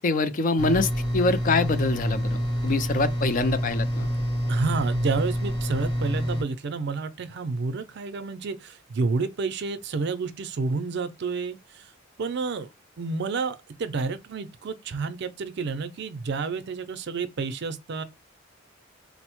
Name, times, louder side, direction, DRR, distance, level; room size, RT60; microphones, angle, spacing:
voice 1, 0.0-4.1, left 3 dB, 40° left, 0.3 m, -24 dB
sound 1, 0.6-6.4, equal, 20° left, 0.9 m, -27 dB
voice 2, 4.5-11.9 12.2-12.7 13.0-18.0, right 4 dB, 55° right, 0.4 m, -30 dB
4.0 x 2.0 x 2.9 m
head